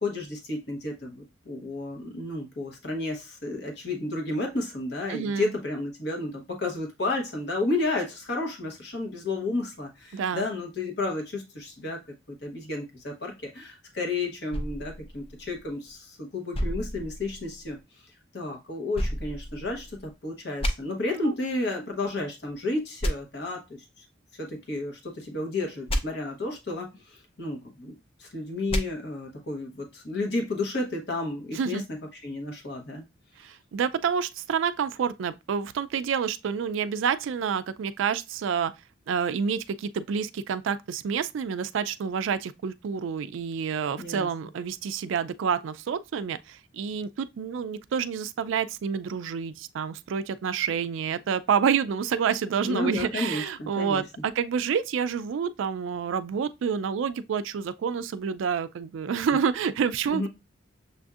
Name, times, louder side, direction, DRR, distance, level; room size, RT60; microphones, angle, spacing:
voice 1, 0.0-12.0 12.3-17.8 18.3-23.6 24.0-24.1 24.3-27.9 28.2-31.8 32.2-33.0 44.0-44.3 52.6-54.0 60.1-60.3, left 2 dB, 55° left, 1.0 m, -32 dB
voice 2, 5.1-5.5 10.1-10.5 21.2-21.3 31.5-31.8 33.4-38.7 39.1-60.3, right 7 dB, 75° right, 0.3 m, -28 dB
sound 1, 14.5-15.9 16.5-17.8 18.9-20.1 20.6-20.7 23.0-23.1 25.9-26.0 28.7-28.8, equal, 30° left, 0.4 m, -31 dB
6.7 x 2.6 x 2.4 m
head